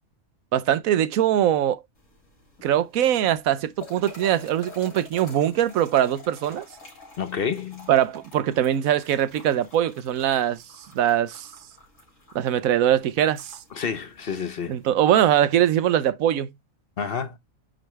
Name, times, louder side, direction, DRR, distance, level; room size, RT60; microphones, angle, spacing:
voice 1, 0.5-1.8 2.6-6.7 7.9-10.6 10.9-11.5 12.3-13.6 14.7-16.5, right 11 dB, 90° right, 1.1 m, -22 dB
sound 1, 2.0-14.9, left 3 dB, 70° left, 3.5 m, -48 dB
voice 2, 7.2-7.9 13.7-14.8 17.0-17.4, left 6 dB, 50° left, 0.9 m, -29 dB
9.2 x 3.4 x 3.1 m
omnidirectional pair, 1.4 m